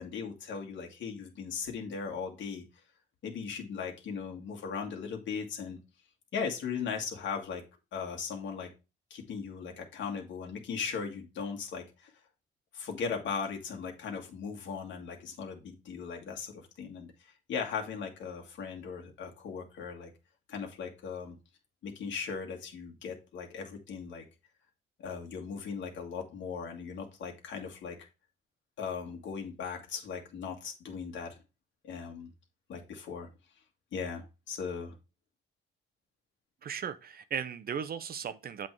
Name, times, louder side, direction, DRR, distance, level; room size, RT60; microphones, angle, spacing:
voice 1, 0.0-2.6 3.2-5.8 6.3-7.6 7.9-8.7 9.1-12.1 12.7-20.1 20.5-21.4 21.8-24.2 25.0-28.0 28.8-31.4 31.8-32.3 32.7-33.3 33.9-35.0, left 6 dB, 70° left, 1.8 m, -38 dB
voice 2, 36.6-38.7, right 7 dB, 50° right, 0.7 m, -36 dB
7.6 x 3.6 x 4.6 m
cardioid pair, 90°, 20 cm